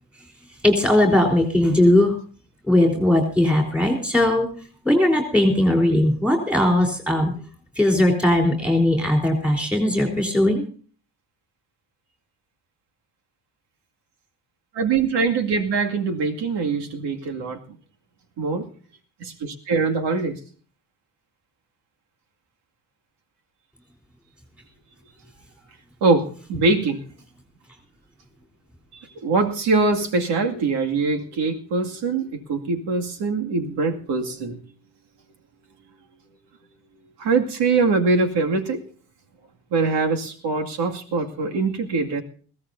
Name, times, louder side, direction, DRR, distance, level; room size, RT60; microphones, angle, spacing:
voice 1, 0.6-2.1 2.7-4.5 4.9-7.3 7.8-10.6, left 1 dB, 5° right, 3.8 m, -19 dB
voice 2, 14.7-17.6 18.4-18.7 19.2-20.4 26.0-27.0 28.9-34.6 37.2-38.8 39.7-42.2, right 4 dB, 80° right, 2.4 m, -23 dB
21.5 x 16.0 x 2.7 m
cardioid pair, 140°, 41 cm